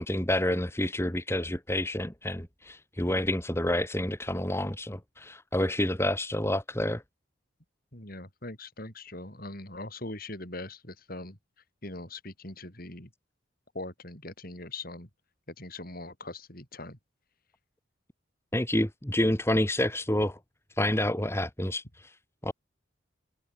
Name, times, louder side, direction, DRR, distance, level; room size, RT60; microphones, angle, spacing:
voice 1, 0.0-7.0 18.5-20.4 20.8-22.1 22.4-22.5, left 1 dB, 15° left, 2.0 m, -28 dB
voice 2, 7.9-11.4 11.8-13.1 13.7-15.1 15.6-17.0, left 2 dB, 45° left, 7.0 m, -41 dB
head